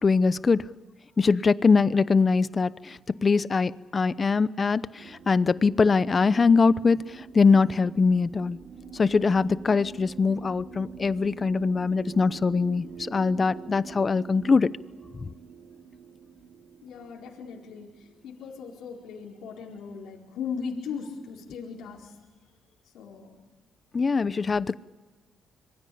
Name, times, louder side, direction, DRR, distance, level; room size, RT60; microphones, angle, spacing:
voice 1, 0.0-0.6 1.2-8.6 8.9-14.7 15.2-15.3 23.9-24.8, left 4 dB, 35° left, 17 dB, 0.8 m, -22 dB
sound 1, 5.0-19.5, right 6 dB, 55° right, 7.1 m, -46 dB
voice 2, 16.8-22.2 22.9-23.4, left 6 dB, 80° left, -1 dB, 4.4 m, -38 dB
26.0 x 22.5 x 8.6 m, 1.3 s
cardioid pair, 90°, 0 cm